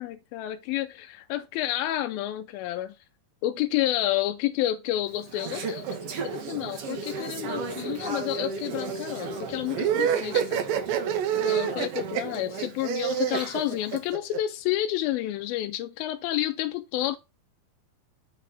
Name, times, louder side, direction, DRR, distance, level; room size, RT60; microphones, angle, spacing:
voice 1, 0.0-3.0 3.4-5.9 6.1-10.8 11.3-17.2, left 14 dB, 85° left, 2.4 m, -30 dB
Conversation / Chatter, 5.1-14.0, right 4 dB, 55° right, 1.9 m, -35 dB
sound 1, 9.8-14.4, right 9 dB, 75° right, 2.5 m, -26 dB
8.9 x 4.1 x 5.9 m
omnidirectional pair, 4.2 m